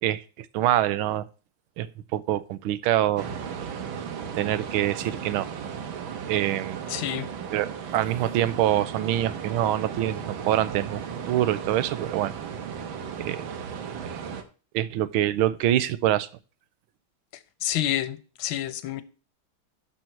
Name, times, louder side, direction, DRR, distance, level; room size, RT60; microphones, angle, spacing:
voice 1, 0.0-1.3 1.8-3.3 4.4-5.5 6.3-6.8 7.5-11.0 11.3-12.3 13.2-13.5 14.7-16.3, right 12 dB, 90° right, 1.5 m, -25 dB
sound 1, 3.2-14.4, right 7 dB, 75° right, 1.9 m, -35 dB
voice 2, 6.9-7.3 17.6-19.0, left 12 dB, 80° left, 1.6 m, -28 dB
12.0 x 4.5 x 4.4 m
omnidirectional pair, 2.2 m